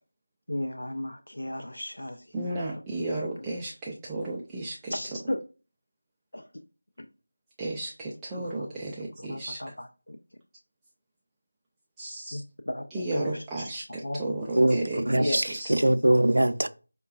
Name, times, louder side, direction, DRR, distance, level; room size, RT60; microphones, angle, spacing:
voice 1, 0.5-2.6 4.9-5.4 6.3-6.5 7.0-7.1 8.3-8.5 9.3-10.2 12.3-13.4 14.0-14.2 15.0-15.4, left 1 dB, 70° left, 0.5 m, -34 dB
voice 2, 2.3-4.9 7.6-9.8 12.0-12.4 12.9-15.8, right 2 dB, 10° right, 0.3 m, -34 dB
voice 3, 14.6-16.7, right 1 dB, 80° right, 0.4 m, -22 dB
5.4 x 2.2 x 2.4 m
figure-of-eight pair, 170°, 0 cm